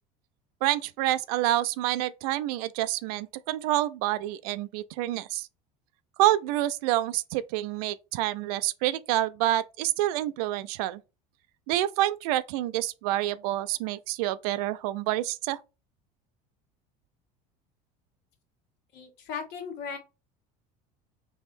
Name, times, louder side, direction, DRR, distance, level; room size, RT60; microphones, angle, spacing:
voice 1, 0.6-5.5 6.2-11.0 11.7-15.6, right 14 dB, 80° right, 0.5 m, -27 dB
voice 2, 18.9-20.0, left 6 dB, 65° left, 1.6 m, -37 dB
3.5 x 3.1 x 4.3 m
supercardioid pair, 105°, 19 cm